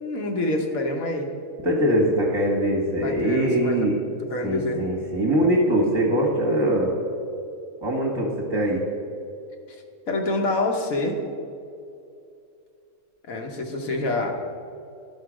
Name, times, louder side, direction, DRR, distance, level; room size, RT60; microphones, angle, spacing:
voice 1, 0.0-1.3 3.0-4.0 4.3-4.8 10.1-11.2 13.3-14.3, left 2 dB, 75° left, 2 dB, 1.4 m, -26 dB
voice 2, 1.6-3.9 4.4-6.9 7.8-8.8, right 1 dB, 20° right, -2 dB, 1.1 m, -22 dB
11.5 x 4.1 x 6.1 m, 2.5 s
omnidirectional pair, 1.5 m